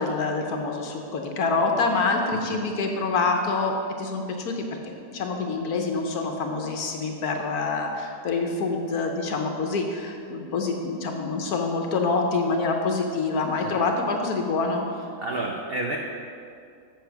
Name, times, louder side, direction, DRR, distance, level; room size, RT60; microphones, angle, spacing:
voice 1, 0.0-14.9, left 3 dB, 60° left, 3 dB, 1.2 m, -26 dB
voice 2, 15.2-16.0, right 2 dB, 70° right, 0 dB, 0.5 m, -30 dB
7.5 x 7.0 x 5.8 m, 2.4 s
omnidirectional pair, 2.0 m